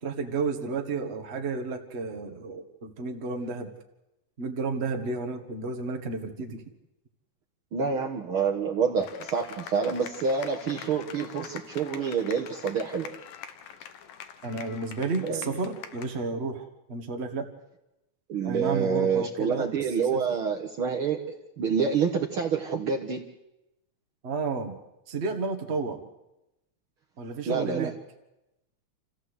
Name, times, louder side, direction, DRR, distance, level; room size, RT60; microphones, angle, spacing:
voice 1, 0.0-3.7 4.4-6.6 14.4-17.5 18.4-20.2 24.2-24.8 25.1-26.0 27.2-27.9, right 4 dB, 25° right, 5 dB, 1.6 m, -32 dB
voice 2, 7.7-13.1 15.2-15.4 18.3-21.2 21.6-23.2 27.5-27.9, right 6 dB, 55° right, 1 dB, 1.9 m, -27 dB
sound 1, 9.0-16.3, left 9 dB, 85° left, 2.8 m, -44 dB
28.0 x 15.0 x 8.2 m, 0.93 s
omnidirectional pair, 3.5 m